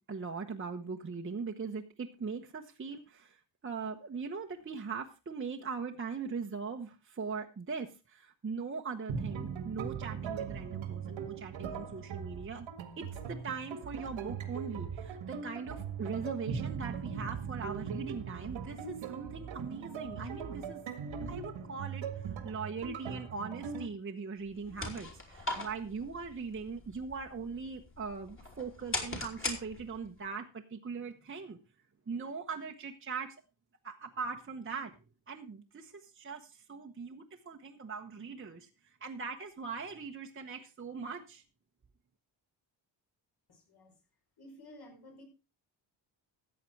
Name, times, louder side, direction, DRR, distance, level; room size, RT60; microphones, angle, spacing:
voice 1, 0.0-12.7 13.0-20.8 21.2-31.6 32.1-33.4 33.8-35.0 35.3-41.4, right 5 dB, 25° right, 2 dB, 1.0 m, -40 dB
sound 1, 9.1-23.9, right 6 dB, 90° right, 2.0 m, -40 dB
sound 2, 24.4-30.2, left 2 dB, 25° left, 3.3 m, -41 dB
voice 2, 43.5-43.9 44.4-45.2, left 1 dB, 55° left, 2 dB, 5.6 m, -53 dB
14.0 x 8.6 x 4.6 m, 0.30 s
cardioid pair, 120°, 45 cm